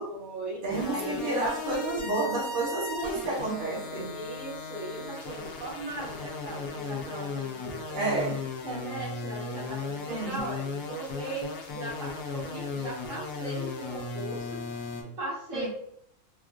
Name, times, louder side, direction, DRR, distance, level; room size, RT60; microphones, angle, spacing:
voice 1, 0.0-0.6 0.9-1.3 4.1-8.2 8.6-15.7, right 2 dB, 60° right, -6 dB, 1.6 m, -38 dB
voice 2, 0.6-4.1 7.9-8.4 10.1-10.4 15.5-15.7, right 2 dB, 45° right, -4 dB, 0.9 m, -30 dB
sound 1, 0.7-15.0, left 4 dB, 80° left, 1.1 m, -36 dB
3.6 x 2.4 x 2.4 m, 0.65 s
omnidirectional pair, 1.5 m